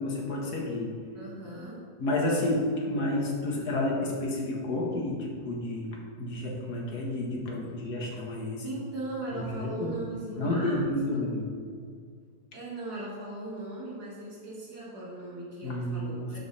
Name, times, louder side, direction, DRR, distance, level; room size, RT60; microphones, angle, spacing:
voice 1, 0.0-1.0 2.0-8.7 9.3-10.0 10.4-11.5 15.6-16.4, left 1 dB, 85° left, -1 dB, 2.1 m, -30 dB
voice 2, 1.1-1.8 8.6-10.8 11.1-11.2 12.5-16.4, right 1 dB, 85° right, -6 dB, 2.9 m, -38 dB
11.5 x 5.4 x 4.2 m, 2.1 s
omnidirectional pair, 1.6 m